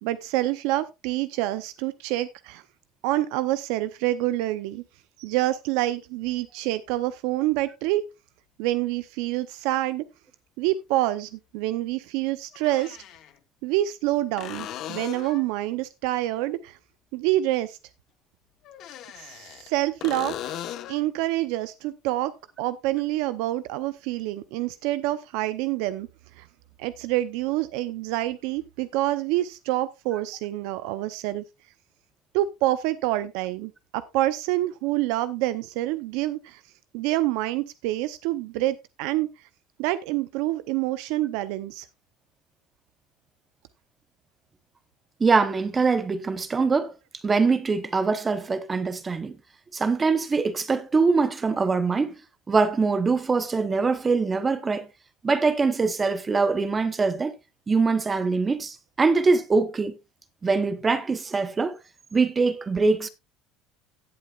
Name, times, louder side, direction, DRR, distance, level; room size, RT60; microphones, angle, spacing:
voice 1, 0.0-2.6 3.0-4.8 5.2-8.1 8.6-10.0 10.6-13.0 13.6-16.8 17.1-17.8 19.1-20.6 20.9-26.1 26.4-26.5 26.8-31.4 32.3-36.6 36.9-39.5 39.8-41.9, right 15 dB, 70° right, 0.6 m, -27 dB
sound 1, 9.0-9.1 11.2-11.3 12.5-13.3 14.4-15.5 18.6-19.7 20.0-21.1 24.7-24.8, left 11 dB, 45° left, 1.1 m, -37 dB
voice 2, 45.2-46.9 47.2-49.4 49.7-52.1 52.5-54.9 55.2-57.3 57.7-59.9 60.4-61.8 62.1-63.1, right 4 dB, 15° right, 0.8 m, -23 dB
16.5 x 8.2 x 2.4 m
cardioid pair, 160°, 0 cm